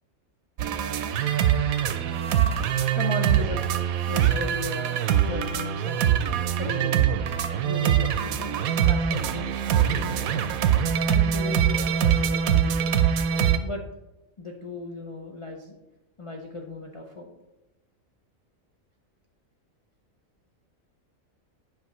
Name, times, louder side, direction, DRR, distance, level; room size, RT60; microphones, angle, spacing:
sound 1, 0.6-13.6, right 9 dB, 90° right, 1.0 m, -23 dB
voice 1, 2.9-3.6 4.1-6.1 6.6-7.4 7.6-10.4 11.1-12.9 13.6-13.8 14.4-15.8 16.2-17.3, left 2 dB, 45° left, 1 dB, 0.4 m, -36 dB
8.0 x 5.3 x 3.1 m, 0.96 s
omnidirectional pair, 1.4 m